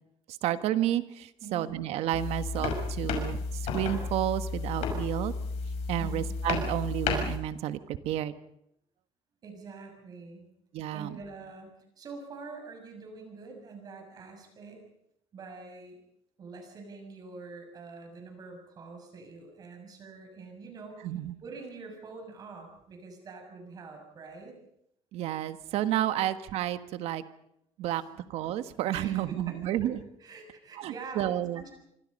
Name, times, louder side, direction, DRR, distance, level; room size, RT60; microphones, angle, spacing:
voice 1, 0.4-5.3 5.9-8.4 10.7-11.2 21.0-21.4 25.1-27.2 27.8-28.0 28.3-30.0 30.8-31.6, right 12 dB, 75° right, 12 dB, 1.4 m, -31 dB
voice 2, 1.4-1.8 6.0-6.3 9.4-10.5 10.9-14.8 15.3-16.0 16.4-21.0 21.4-24.6 27.9-28.2 28.9-29.9 30.2-31.7, right 4 dB, 35° right, 4 dB, 7.1 m, -45 dB
sound 1, 2.1-7.4, left 4 dB, 80° left, 5.9 m, -32 dB
25.5 x 25.0 x 5.4 m, 0.75 s
cardioid pair, 160°, 11 cm